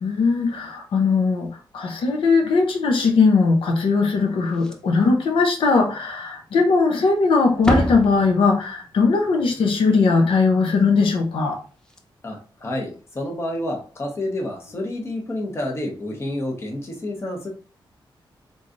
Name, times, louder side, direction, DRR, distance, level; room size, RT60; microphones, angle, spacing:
voice 1, 0.0-11.6, left 4 dB, 85° left, 2 dB, 0.7 m, -19 dB
Slam, 4.4-5.1 5.4-5.5 6.0-6.1 6.9-7.2 7.5-8.8 11.5-11.6 11.8-12.0 13.5-13.7, equal, 10° left, 0.5 m, -28 dB
voice 2, 12.2-17.5, left 1 dB, 30° left, 0 dB, 1.0 m, -29 dB
3.8 x 3.0 x 2.5 m, 0.38 s
wide cardioid pair, 145°, 9 cm